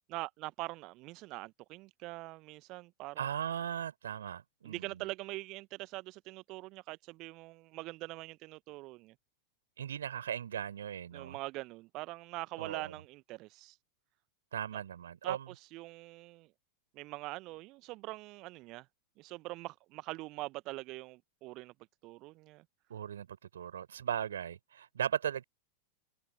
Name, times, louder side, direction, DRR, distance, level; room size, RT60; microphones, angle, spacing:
voice 1, 0.1-3.3 4.6-9.1 11.1-13.8 14.7-14.8 15.2-16.5 16.9-18.9 19.2-21.7 22.0-22.6, right 21 dB, 40° right, 1.0 m, -43 dB
voice 2, 3.2-5.0 9.8-11.4 12.6-12.9 14.5-15.5 22.9-25.4, right 9 dB, 65° right, 4.0 m, -38 dB
figure-of-eight pair, 90°, 0 cm